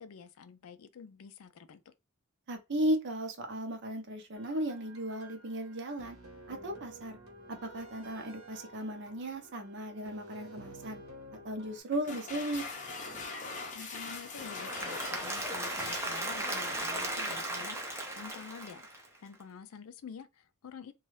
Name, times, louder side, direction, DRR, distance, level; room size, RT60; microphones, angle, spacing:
voice 1, 0.0-1.9 13.7-20.9, left 6 dB, 75° left, 0.4 m, -49 dB
voice 2, 2.5-6.2 6.5-7.2 7.5-11.0 11.4-12.6, right 1 dB, 55° right, 0.6 m, -35 dB
sound 1, 4.4-11.8, right 1 dB, 75° right, 1.1 m, -51 dB
sound 2, 11.9-17.5, left 4 dB, 35° left, 0.6 m, -43 dB
Applause / Crowd, 14.4-19.3, right 1 dB, 10° right, 0.5 m, -36 dB
2.6 x 2.3 x 3.2 m
head